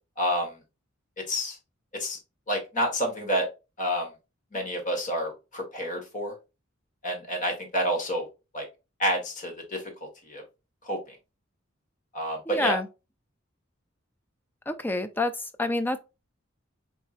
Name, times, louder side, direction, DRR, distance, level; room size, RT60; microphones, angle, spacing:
voice 1, 0.2-0.6 1.3-1.6 1.9-2.2 2.5-3.5 3.8-4.1 4.5-6.3 7.0-8.3 8.5-8.6 9.0-9.8 10.2-10.4 10.8-11.2 12.1-12.8, equal, 40° left, 1.5 m, -29 dB
voice 2, 12.5-12.9 14.7-16.0, left 2 dB, 10° left, 0.4 m, -28 dB
4.2 x 3.6 x 2.4 m
head